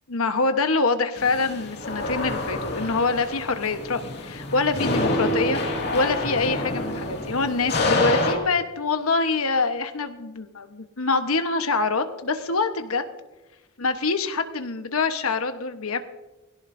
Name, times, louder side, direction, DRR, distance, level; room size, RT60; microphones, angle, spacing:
voice 1, 0.1-13.0 13.8-16.0, left 3 dB, 85° left, 8 dB, 1.2 m, -25 dB
sound 1, 1.1-8.3, left 2 dB, 50° left, 2.3 m, -27 dB
20.5 x 17.0 x 2.7 m, 1.1 s
head